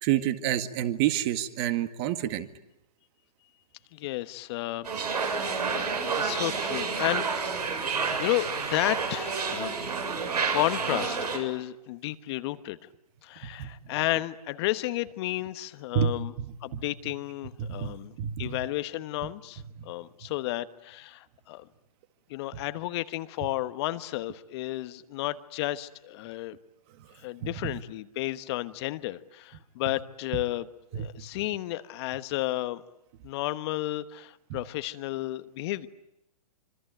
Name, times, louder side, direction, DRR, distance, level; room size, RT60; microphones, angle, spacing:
voice 1, 0.0-2.5 13.4-13.7 15.9-16.5 16.7-16.8 17.6-18.6 27.4-27.7 30.9-31.1 34.5-34.6, right 10 dB, 40° right, 10 dB, 1.9 m, -29 dB
voice 2, 3.9-7.8 8.2-12.8 13.2-16.3 16.6-21.7 22.3-26.6 27.1-30.7 30.9-32.8 33.2-35.9, left 17 dB, 40° left, 12 dB, 1.2 m, -32 dB
sound 1, 4.8-11.4, right 5 dB, 80° right, 7.4 m, -29 dB
26.0 x 24.5 x 9.2 m, 0.87 s
hypercardioid pair, 125°, 20 cm